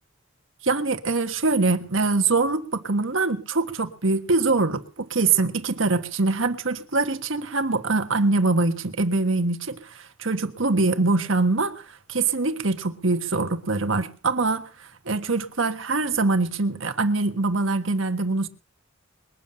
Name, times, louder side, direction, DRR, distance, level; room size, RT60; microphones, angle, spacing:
voice 1, 0.6-18.5, right 3 dB, 70° right, 1.5 m, -24 dB
21.5 x 7.3 x 8.8 m
head